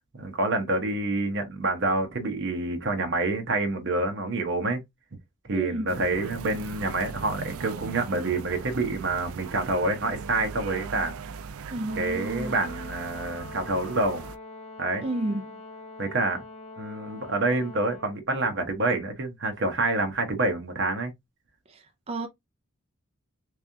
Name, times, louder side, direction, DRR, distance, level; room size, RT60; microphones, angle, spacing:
voice 1, 0.2-4.8 5.5-11.1 12.0-14.2 14.8-15.0 16.0-16.4 16.8-21.1, right 2 dB, 55° right, 1.0 m, -27 dB
voice 2, 5.5-5.9 11.7-12.6 15.0-15.6 21.7-22.3, right 1 dB, 30° right, 0.4 m, -32 dB
sound 1, 5.9-14.4, right 5 dB, 85° right, 0.4 m, -39 dB
Brass instrument, 11.9-18.2, left 2 dB, 30° left, 0.5 m, -44 dB
3.4 x 3.4 x 2.7 m
head